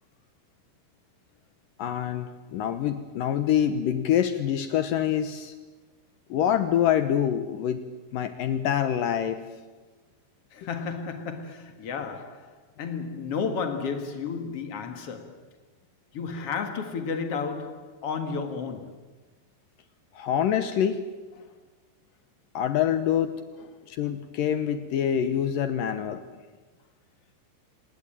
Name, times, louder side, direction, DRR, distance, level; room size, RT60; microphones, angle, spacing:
voice 1, 1.8-5.5 6.3-7.8 8.1-9.4 20.2-21.0 22.5-23.3 23.9-26.2, left 9 dB, 80° left, 1.9 m, -25 dB
voice 2, 10.5-12.5 12.8-15.4 16.1-19.0 23.6-23.7, left 5 dB, 60° left, 1.6 m, -32 dB
28.5 x 19.5 x 9.0 m
omnidirectional pair, 5.5 m